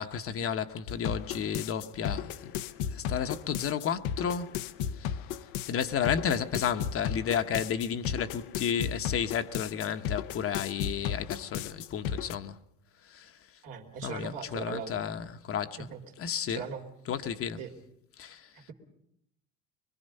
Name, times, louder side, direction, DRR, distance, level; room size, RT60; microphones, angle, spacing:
voice 1, 0.0-2.5 2.9-4.5 5.0-5.2 5.7-12.6 13.1-13.3 14.0-15.9 16.2-16.6 17.1-17.6 18.2-18.5, left 8 dB, 45° left, 1.0 m, -32 dB
sound 1, 0.9-12.3, left 8 dB, 75° left, 0.8 m, -35 dB
voice 2, 13.6-14.9 15.8-16.0 16.5-16.9 17.6-17.7 18.5-18.7, right 7 dB, 75° right, 3.0 m, -39 dB
24.0 x 21.5 x 5.4 m
supercardioid pair, 95°, 32 cm